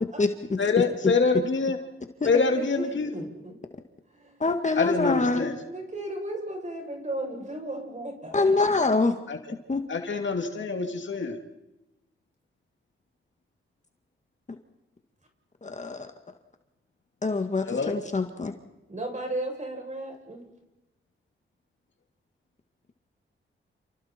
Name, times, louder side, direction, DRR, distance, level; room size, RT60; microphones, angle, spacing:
voice 1, 0.6-1.8 2.2-3.1 4.8-5.5 9.3-9.4 9.9-11.4 17.7-18.0, left 4 dB, 65° left, 4 dB, 2.5 m, -25 dB
voice 2, 2.5-3.5 4.1-4.4 5.7-8.4 18.9-20.4, right 1 dB, 35° right, 1 dB, 7.8 m, -35 dB
voice 3, 4.4-5.5 8.3-9.2 9.7-9.8 15.6-16.1 17.2-18.5, left 3 dB, 35° left, 5 dB, 1.9 m, -25 dB
29.5 x 29.5 x 4.5 m, 0.98 s
cardioid pair, 65°, 21 cm